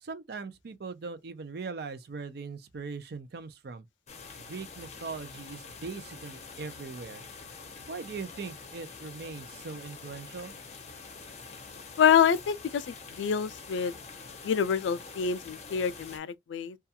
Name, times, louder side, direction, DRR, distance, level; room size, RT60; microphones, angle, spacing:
voice 1, 0.0-3.8 4.5-7.2 7.9-10.5, right 4 dB, 60° right, 0.5 m, -40 dB
sound 1, 4.1-16.2, left 4 dB, 40° left, 0.6 m, -46 dB
voice 2, 12.0-13.9 14.4-16.8, left 7 dB, 90° left, 0.3 m, -26 dB
2.3 x 2.2 x 2.7 m
head